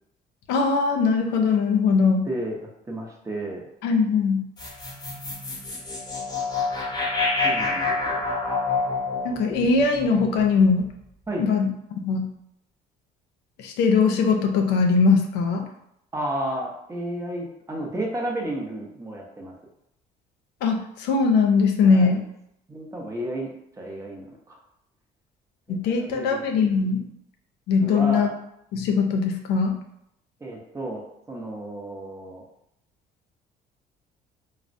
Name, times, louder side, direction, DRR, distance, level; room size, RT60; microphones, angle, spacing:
voice 1, 0.5-2.3 3.8-4.4 9.2-10.9 11.4-11.7 12.0-12.3 13.6-15.7 20.6-22.2 25.7-27.0 27.7-28.3 28.7-29.8, left 4 dB, 90° left, 3 dB, 0.5 m, -21 dB
voice 2, 2.3-2.6 2.9-3.6 7.4-8.2 11.3-11.5 16.1-19.5 21.9-22.2 22.7-23.5 23.8-24.6 25.7-26.4 27.8-28.3 30.4-32.4, right 1 dB, 20° right, -1 dB, 0.6 m, -32 dB
sound 1, 4.6-10.9, left 3 dB, 25° left, 0.8 m, -28 dB
3.1 x 2.0 x 2.6 m, 0.78 s
cardioid pair, 110°, 17 cm